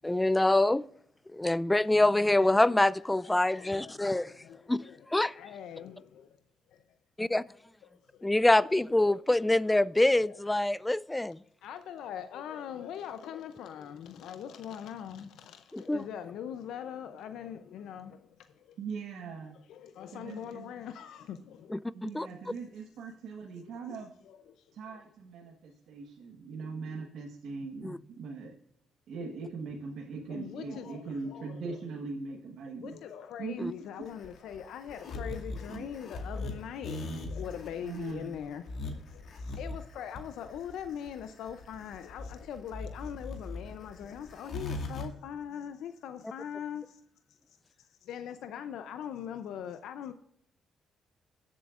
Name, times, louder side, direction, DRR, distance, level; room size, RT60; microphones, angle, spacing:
voice 1, 0.0-0.8 1.3-4.3 4.7-4.8 5.1-5.3 7.2-7.4 8.2-11.4 15.7-16.0 21.7-22.3 27.8-28.0 33.6-33.7, left 1 dB, 10° left, 0.3 m, -25 dB
voice 2, 1.9-2.5 18.8-19.6 20.1-20.7 21.9-24.1 24.7-28.5 29.1-33.0 33.4-33.7 35.7-35.9 37.8-38.3, right 4 dB, 75° right, 1.3 m, -41 dB
voice 3, 3.0-5.1 5.3-6.4 6.7-6.8 8.1-8.7 9.1-9.5 10.2-10.4 11.6-18.8 19.7-21.8 23.9-25.0 30.3-31.6 32.8-47.0 47.8-50.1, left 9 dB, 80° left, 0.5 m, -42 dB
sound 1, 34.0-45.1, left 2 dB, 60° left, 2.2 m, -39 dB
16.5 x 7.6 x 2.5 m
cardioid pair, 90°, 0 cm